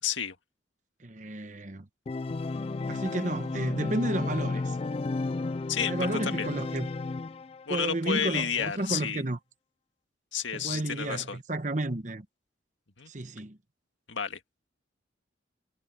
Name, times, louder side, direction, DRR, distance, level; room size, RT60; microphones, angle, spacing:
voice 1, 0.0-0.4 5.7-5.9 6.2-6.5 7.7-9.2 10.3-11.4 13.0-13.1 14.1-14.4, left 7 dB, 80° left, 1.9 m, -31 dB
voice 2, 1.0-1.9 2.9-4.8 5.9-6.9 7.7-9.4 10.5-12.2 13.1-13.6, right 1 dB, 40° right, 1.1 m, -32 dB
Organ, 2.1-7.8, left 3 dB, 30° left, 0.3 m, -33 dB
head